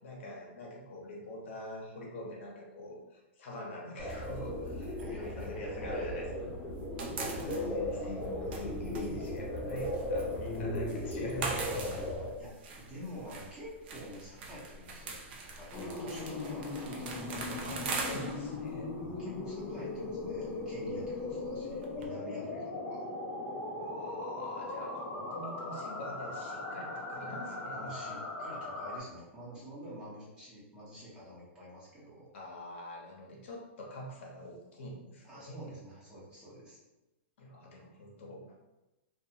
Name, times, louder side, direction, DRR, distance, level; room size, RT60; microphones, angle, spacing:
voice 1, 0.0-6.5 7.3-12.1 17.3-18.9 23.7-27.9 32.3-35.8 37.4-38.5, left 1 dB, 70° left, -2 dB, 0.9 m, -44 dB
sound 1, 4.0-12.3, left 1 dB, 5° left, 1.0 m, -36 dB
sound 2, 4.1-6.3 6.6-22.1, right 3 dB, 55° right, 0.5 m, -43 dB
voice 2, 5.0-6.2 7.2-7.4 12.4-16.7 19.0-23.0 27.7-32.3 35.3-36.8, equal, 15° right, -8 dB, 1.0 m, -48 dB
sound 3, 15.7-29.0, left 2 dB, 30° left, 0.7 m, -39 dB
2.7 x 2.3 x 2.7 m, 1.0 s
hypercardioid pair, 150°, 7 cm